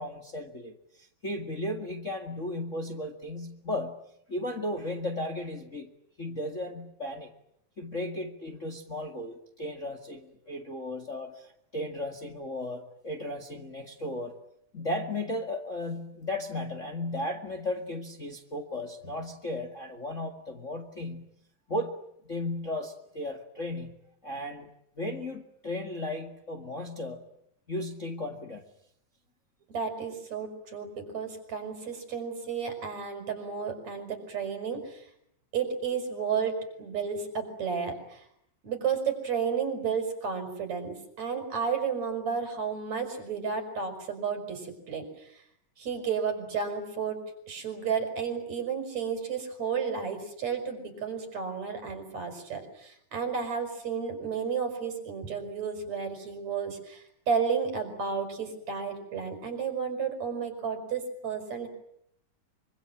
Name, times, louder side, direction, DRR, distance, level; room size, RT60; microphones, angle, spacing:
voice 1, 0.0-4.0 4.3-5.9 6.2-7.3 7.8-14.3 14.7-21.3 21.7-22.0 22.3-24.7 25.0-27.2 27.7-28.6, left 1 dB, 30° left, 6 dB, 1.9 m, -35 dB
voice 2, 29.7-35.0 35.5-38.3 38.6-45.1 45.8-47.2 47.5-61.7, right 6 dB, 60° right, 7 dB, 6.3 m, -32 dB
25.5 x 25.0 x 9.0 m, 0.74 s
omnidirectional pair, 3.5 m